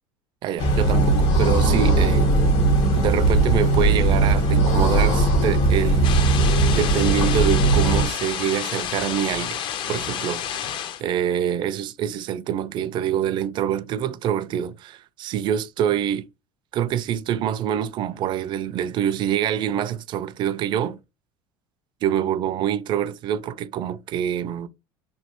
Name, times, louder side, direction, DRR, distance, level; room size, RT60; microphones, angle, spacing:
voice 1, 0.4-2.3 3.0-6.2 6.7-9.6 9.9-16.2 16.7-21.0 22.0-24.7, right 10 dB, 40° right, 0.4 m, -25 dB
sound 1, 0.6-8.1, right 2 dB, 65° left, 1.6 m, -19 dB
sound 2, 6.0-11.0, left 9 dB, 45° left, 0.5 m, -29 dB
3.1 x 2.6 x 2.9 m
supercardioid pair, 125°, 12 cm